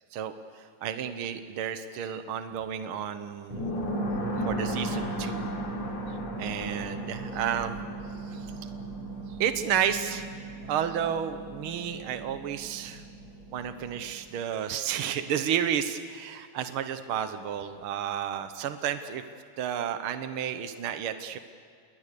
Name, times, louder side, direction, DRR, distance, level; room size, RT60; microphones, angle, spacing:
voice 1, 0.1-3.9 4.5-5.5 6.4-7.8 8.3-8.5 9.4-10.3 10.7-13.0 13.5-19.2 19.6-21.4, right 9 dB, 75° right, 9 dB, 1.9 m, -31 dB
sound 1, 3.5-14.0, left 1 dB, 80° left, 4.4 m, -38 dB
Harp, 3.9-14.4, right 4 dB, 55° right, 3.2 m, -39 dB
28.5 x 22.0 x 6.8 m, 2.3 s
omnidirectional pair, 2.4 m